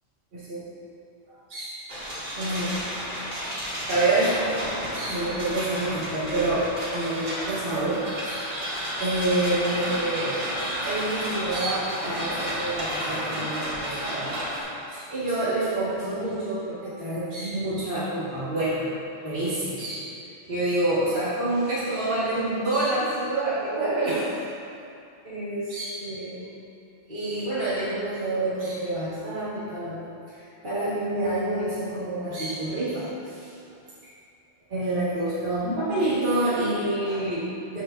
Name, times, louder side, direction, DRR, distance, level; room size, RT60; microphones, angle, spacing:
voice 1, 0.3-0.6 1.5-1.7 2.0-2.9 3.5-3.6 3.9-4.3 4.9-8.5 9.0-10.4 10.8-14.3 14.9-18.9 19.2-20.1 20.5-24.3 25.2-26.4 27.1-30.0 30.6-33.5 34.7-37.8, right 2 dB, 45° right, -12 dB, 1.8 m, -27 dB
sound 1, 1.9-14.6, equal, 80° right, 2.1 m, -31 dB
13.0 x 5.3 x 2.5 m, 2.6 s
omnidirectional pair, 1.2 m